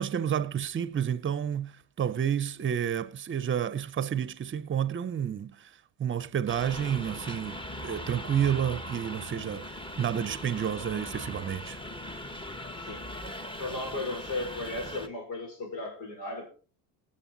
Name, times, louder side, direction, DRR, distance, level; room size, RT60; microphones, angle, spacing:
voice 1, 0.0-5.7 6.0-11.8, right 9 dB, 25° right, 0.8 m, -30 dB
sound 1, 6.5-15.1, left 1 dB, 10° left, 1.3 m, -40 dB
voice 2, 13.6-16.5, left 2 dB, 75° left, 5.5 m, -35 dB
18.0 x 6.9 x 4.0 m
supercardioid pair, 90°, 44 cm